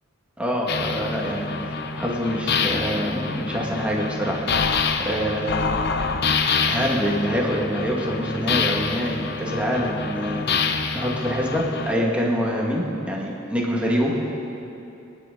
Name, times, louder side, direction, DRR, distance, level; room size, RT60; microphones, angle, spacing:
voice 1, 0.4-5.6 6.7-10.5 10.9-14.1, equal, 5° right, -4 dB, 1.9 m, -25 dB
sound 1, 0.7-11.9, left 4 dB, 55° left, 0.7 m, -26 dB
24.0 x 10.0 x 4.0 m, 2.8 s
head